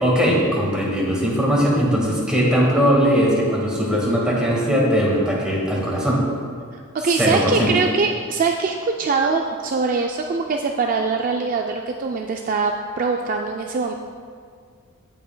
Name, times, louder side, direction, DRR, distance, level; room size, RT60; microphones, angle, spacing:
voice 1, 0.0-6.2 7.2-7.7, equal, 5° right, -5 dB, 1.6 m, -19 dB
voice 2, 6.7-13.9, right 4 dB, 40° right, 2 dB, 0.3 m, -23 dB
16.0 x 5.5 x 2.2 m, 2.1 s
head